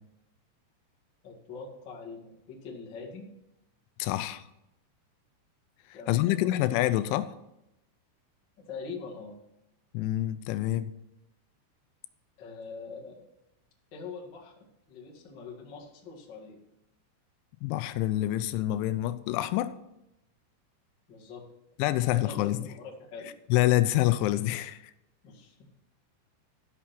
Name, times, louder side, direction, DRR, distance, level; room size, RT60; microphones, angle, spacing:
voice 1, 1.2-3.3 5.9-6.6 8.6-9.3 12.4-13.3 13.9-16.6 21.1-21.4 22.1-23.3 25.2-25.6, left 4 dB, 45° left, 1.4 m, -43 dB
voice 2, 4.0-4.5 6.1-7.3 9.9-10.9 17.6-19.7 21.8-22.7 23.5-24.8, left 15 dB, 85° left, 2.9 m, -26 dB
12.5 x 6.2 x 5.8 m
omnidirectional pair, 5.5 m